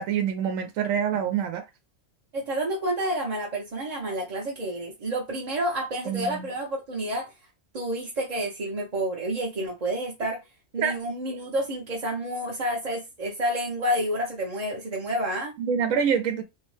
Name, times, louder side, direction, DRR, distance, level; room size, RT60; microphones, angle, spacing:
voice 1, 0.0-1.6 6.1-6.4 10.8-10.9 15.6-16.4, right 7 dB, 90° right, 1.0 m, -26 dB
voice 2, 2.3-7.3 7.7-10.4 10.7-15.6, right 1 dB, 40° right, 0.6 m, -29 dB
2.7 x 2.1 x 3.1 m
omnidirectional pair, 1.3 m